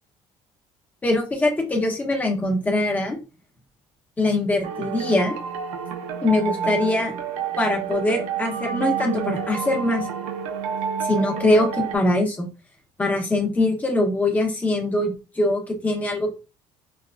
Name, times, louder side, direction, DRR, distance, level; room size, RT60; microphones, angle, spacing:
voice 1, 1.0-3.2 4.2-5.3 6.2-7.1 7.6-10.0 11.0-12.5 13.0-16.3, left 2 dB, 15° left, 1 dB, 0.8 m, -22 dB
sound 1, 4.6-12.0, right 7 dB, 80° right, 0.5 m, -29 dB
2.9 x 2.4 x 2.3 m, 0.31 s
cardioid pair, 145°, 11 cm